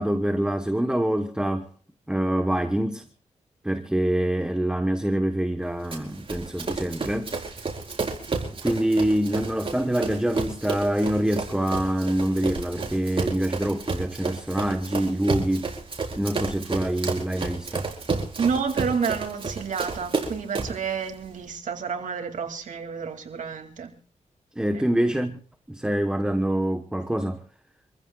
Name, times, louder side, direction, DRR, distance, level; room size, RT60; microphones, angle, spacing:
voice 1, 0.0-1.7 2.1-3.0 3.6-7.3 8.6-15.7 16.2-17.9 24.6-25.4 25.7-27.4, right 1 dB, 5° right, 1.2 m, -25 dB
Run, 5.9-20.8, right 4 dB, 45° right, 4.5 m, -31 dB
voice 2, 18.4-23.9 24.7-24.8, right 6 dB, 80° right, 2.6 m, -29 dB
27.0 x 15.0 x 2.4 m
cardioid pair, 85°, 13 cm